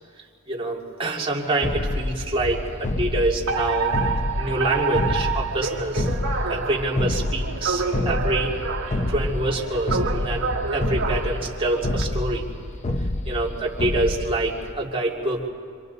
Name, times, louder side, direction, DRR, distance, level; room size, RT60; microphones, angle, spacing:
voice 1, 0.5-6.1 6.5-8.5 9.1-10.5 10.7-12.4 13.3-15.5, right 2 dB, 25° right, -3 dB, 2.5 m, -26 dB
sound 1, 1.6-14.7, left 1 dB, 35° left, 0.8 m, -28 dB
Alarm, 3.5-12.0, right 4 dB, 65° right, 1.5 m, -29 dB
26.5 x 26.0 x 4.1 m, 2.2 s
head